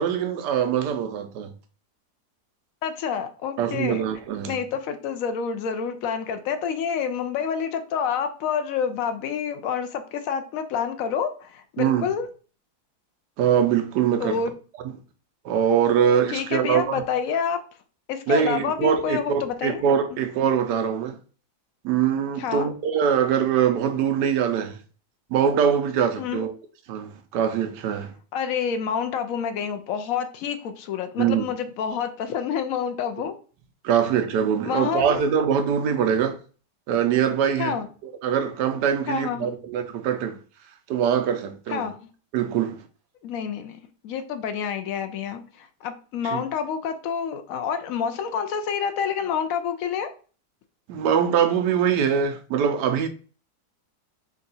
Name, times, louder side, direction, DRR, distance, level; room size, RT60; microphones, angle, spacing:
voice 1, 0.0-1.5 3.6-4.6 11.8-12.1 13.4-14.4 15.4-17.0 18.3-21.2 21.8-24.8 25.3-26.5 26.9-28.1 31.2-31.5 33.8-36.4 36.9-37.7 38.0-40.4 40.9-41.8 42.3-42.8 46.2-46.4 50.9-53.1, right 8 dB, 85° right, 1.2 m, -23 dB
voice 2, 2.8-4.0 4.4-12.3 14.2-14.5 16.3-17.6 18.1-19.8 20.1-20.2 22.4-22.7 26.2-26.5 28.3-33.3 34.6-35.3 37.6-37.9 39.1-39.5 41.7-42.0 43.2-43.8 44.0-50.1, left 7 dB, 70° left, 0.9 m, -28 dB
3.7 x 2.4 x 3.9 m
omnidirectional pair, 1.7 m